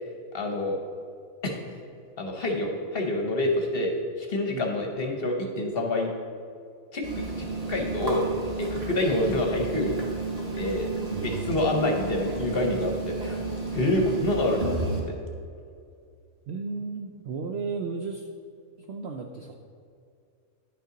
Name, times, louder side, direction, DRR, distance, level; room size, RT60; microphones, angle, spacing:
voice 1, 0.3-0.8 1.4-1.8 2.2-6.1 6.9-8.3 8.6-9.9 10.5-15.1, left 1 dB, 50° left, 2 dB, 0.9 m, -27 dB
sound 1, 7.0-15.0, right 3 dB, 25° right, 1.6 m, -32 dB
voice 2, 11.1-11.5 16.5-18.3 18.8-19.5, right 4 dB, 65° right, 3 dB, 0.6 m, -34 dB
10.0 x 5.6 x 3.8 m, 2.3 s
omnidirectional pair, 1.5 m